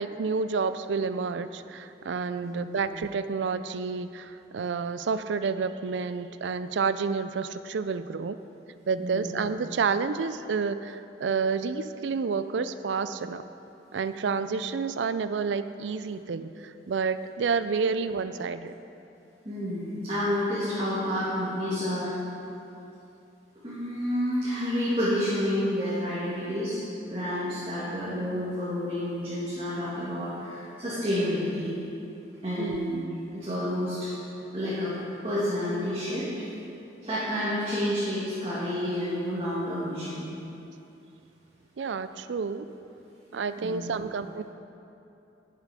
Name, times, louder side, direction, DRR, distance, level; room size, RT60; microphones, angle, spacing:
voice 1, 0.0-8.4 8.9-13.4 13.9-18.7 32.6-33.0 41.8-42.7 43.3-44.4, right 5 dB, 85° right, 12 dB, 0.4 m, -29 dB
voice 2, 9.0-9.4 19.4-22.1 23.6-31.7 32.4-33.0 33.4-34.1 34.5-34.9 35.2-36.5 37.0-40.3 43.6-43.8, equal, 30° right, -12 dB, 2.3 m, -29 dB
11.0 x 7.4 x 5.1 m, 2.8 s
head